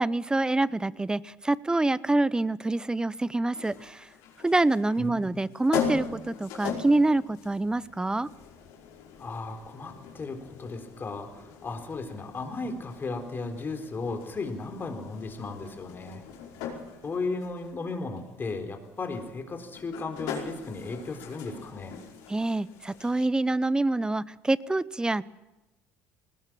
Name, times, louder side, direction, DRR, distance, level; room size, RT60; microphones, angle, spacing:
voice 1, 0.0-4.1 4.4-8.3 22.3-25.2, right 2 dB, 10° right, 20 dB, 0.7 m, -26 dB
sound 1, 3.5-23.3, left 7 dB, 75° left, 5.3 m, -40 dB
voice 2, 5.0-5.3 9.2-16.2 17.0-22.0, left 3 dB, 30° left, 6 dB, 4.0 m, -35 dB
20.0 x 19.0 x 7.6 m, 1.0 s
supercardioid pair, 80°, 7 cm